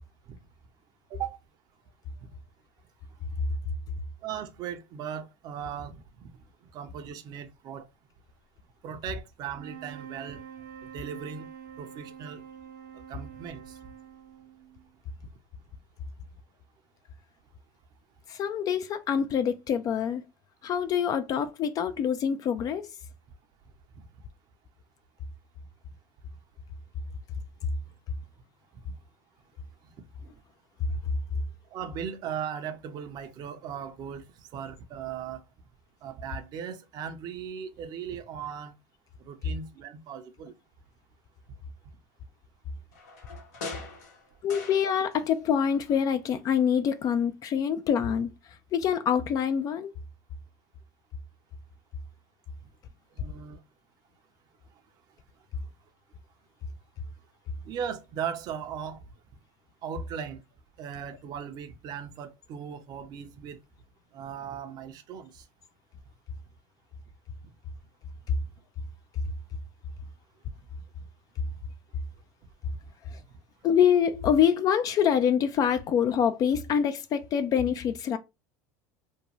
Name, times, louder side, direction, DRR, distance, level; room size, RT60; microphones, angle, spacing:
voice 1, 4.2-6.4 6.7-7.9 8.8-10.4 10.8-11.5 11.8-12.4 12.9-13.8 23.9-24.1 29.8-29.9 30.2-30.4 31.7-35.4 36.0-38.7 39.2-40.6 53.1-53.6 57.6-59.0 59.8-60.4 60.8-63.6 64.1-65.5 73.2-73.3, right 8 dB, 50° right, 0.6 m, -38 dB
sound 1, 9.5-14.9, right 8 dB, 85° right, 1.0 m, -46 dB
voice 2, 18.3-20.2 20.6-22.9 44.4-49.9 73.1-73.2 73.6-78.2, left 8 dB, 45° left, 0.3 m, -25 dB
sound 2, 42.9-45.4 45.6-46.7 47.0-47.1, left 4 dB, 80° left, 1.0 m, -43 dB
2.6 x 2.2 x 2.9 m
hypercardioid pair, 90°, 9 cm